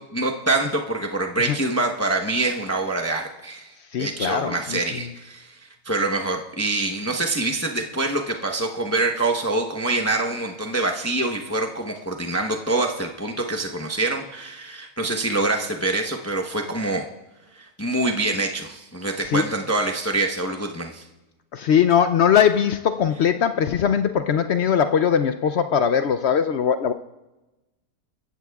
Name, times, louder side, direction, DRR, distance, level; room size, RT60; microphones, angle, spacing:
voice 1, 0.1-3.7 4.0-5.5 5.8-17.1 17.8-21.0, right 2 dB, 15° left, 2 dB, 0.7 m, -25 dB
voice 2, 3.9-5.1 19.2-19.5 21.5-26.9, left 8 dB, 70° left, 9 dB, 0.6 m, -20 dB
26.0 x 15.0 x 2.4 m, 1.1 s
omnidirectional pair, 1.7 m